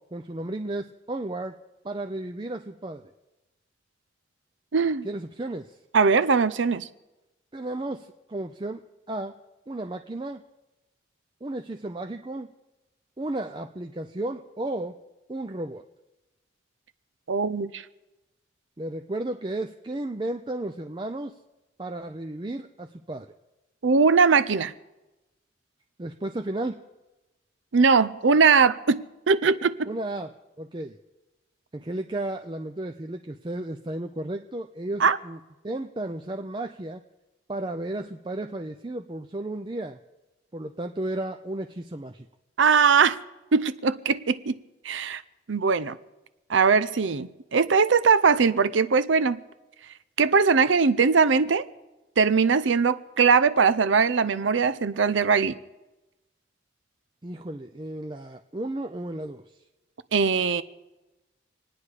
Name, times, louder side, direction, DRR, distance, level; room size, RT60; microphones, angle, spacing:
voice 1, 0.1-1.6 1.8-3.0 5.0-5.8 7.5-8.8 9.1-9.4 9.7-10.4 11.4-12.5 13.2-15.0 15.3-15.8 18.8-21.3 21.8-23.3 26.0-26.8 29.9-31.0 31.7-35.4 35.6-37.0 37.5-40.0 40.5-42.3 57.2-59.4, right 1 dB, 25° right, 0.5 m, -33 dB
voice 2, 4.7-5.0 5.9-6.9 17.3-17.8 23.8-24.7 27.7-29.0 29.3-29.9 35.0-35.2 42.6-43.2 43.5-44.5 44.8-45.2 45.5-46.0 46.5-49.4 50.2-51.6 52.2-55.5 60.1-60.6, right 5 dB, 85° right, 0.6 m, -21 dB
26.5 x 9.7 x 4.9 m
head